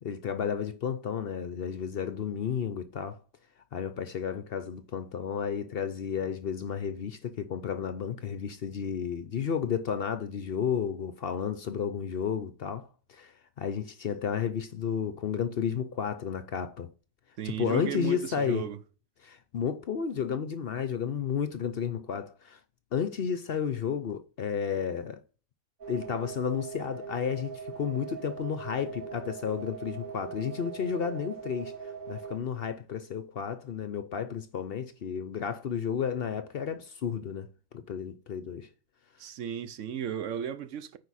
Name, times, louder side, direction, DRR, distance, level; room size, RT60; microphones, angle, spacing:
voice 1, 0.0-3.2 3.7-16.9 17.4-18.7 19.2-22.6 22.9-25.2 25.9-38.7, left 7 dB, 55° left, 0.7 m, -32 dB
voice 2, 17.4-18.8 39.2-41.0, right 9 dB, 70° right, 1.0 m, -35 dB
sound 1, 25.8-32.4, right 6 dB, 85° right, 2.8 m, -41 dB
9.4 x 4.6 x 4.2 m
omnidirectional pair, 1.4 m